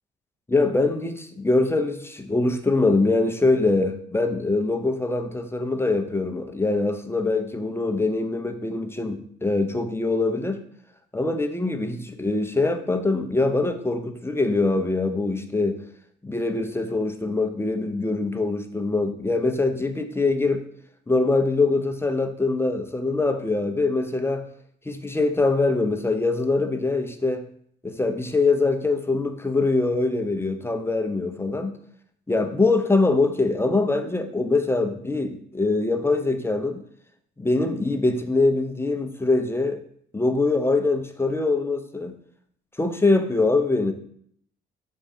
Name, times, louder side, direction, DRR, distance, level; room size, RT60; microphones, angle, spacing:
voice 1, 0.5-10.6 11.1-15.8 16.2-20.7 21.1-24.5 24.9-27.5 27.8-31.7 32.3-36.8 37.4-39.8 40.1-42.1 42.8-43.9, left 3 dB, 10° left, 7 dB, 0.7 m, -23 dB
5.3 x 4.2 x 5.3 m, 0.65 s
cardioid pair, 90°, 20 cm